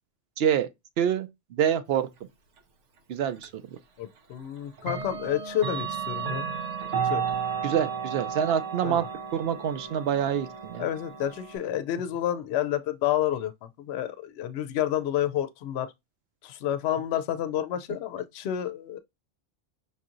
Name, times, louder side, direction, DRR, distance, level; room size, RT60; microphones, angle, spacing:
voice 1, 0.4-0.7 1.0-2.1 3.1-3.8 7.6-10.9, right 9 dB, 65° right, 0.7 m, -27 dB
Clock, 3.4-3.5 4.8-11.6, right 7 dB, 85° right, 1.1 m, -33 dB
voice 2, 4.0-6.5 7.0-7.2 8.8-9.0 10.8-15.9 16.4-19.0, left 11 dB, 70° left, 0.8 m, -29 dB
5.4 x 2.8 x 2.5 m
omnidirectional pair, 1.2 m